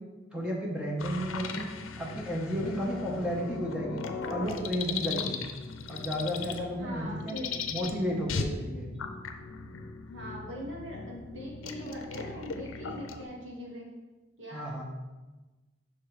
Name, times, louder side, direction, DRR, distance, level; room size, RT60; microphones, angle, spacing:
voice 1, 0.3-4.0 4.3-5.4 5.9-7.4 7.7-8.9 14.5-14.8, equal, 5° right, -3 dB, 0.8 m, -33 dB
sound 1, 1.0-13.2, left 5 dB, 80° left, 0.6 m, -38 dB
voice 2, 6.8-7.8 10.0-13.9 14.4-14.8, equal, 70° right, -3 dB, 1.7 m, -41 dB
5.8 x 4.6 x 4.9 m, 1.2 s
head